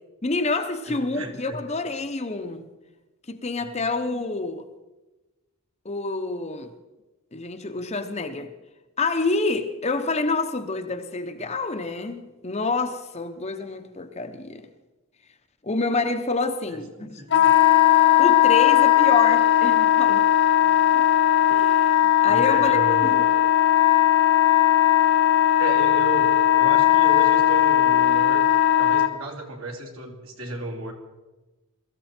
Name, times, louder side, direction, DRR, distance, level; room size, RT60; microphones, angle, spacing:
voice 1, 0.2-2.7 3.3-4.7 5.8-6.7 7.3-8.5 9.0-14.7 15.6-17.2 18.2-20.3 20.9-21.1 21.5-23.2, left 3 dB, 30° left, 0.9 m, -28 dB
voice 2, 0.9-1.5 17.0-17.5 20.6-20.8 22.2-23.2 25.6-28.5 28.8-30.9, right 2 dB, 65° right, 2.9 m, -34 dB
Wind instrument woodwind instrument, 17.3-29.1, left 12 dB, 50° left, 1.1 m, -18 dB
22.5 x 14.5 x 4.4 m
head